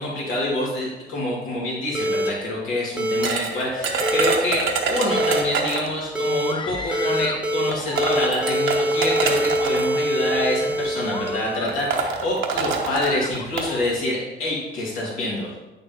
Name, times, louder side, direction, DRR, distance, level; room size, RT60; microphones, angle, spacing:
voice 1, 0.0-15.6, left 1 dB, 90° left, -5 dB, 2.5 m, -26 dB
sound 1, 1.9-2.3 3.0-3.3 4.0-4.4 5.1-5.4 6.1-6.5 6.9-7.7 7.9-11.7, equal, 5° right, 0.8 m, -24 dB
sound 2, 3.2-6.0 7.1-7.2 7.7-9.9 10.8-11.0 11.3-11.4 11.7-13.7, right 4 dB, 80° right, 1.1 m, -26 dB
Screaming, 6.4-7.5 7.9-8.6 9.3-9.9 10.4-10.6 11.1-12.0 12.8-13.9, left 4 dB, 25° left, 0.5 m, -35 dB
8.3 x 6.8 x 2.9 m, 1.1 s
cardioid pair, 90°, 20 cm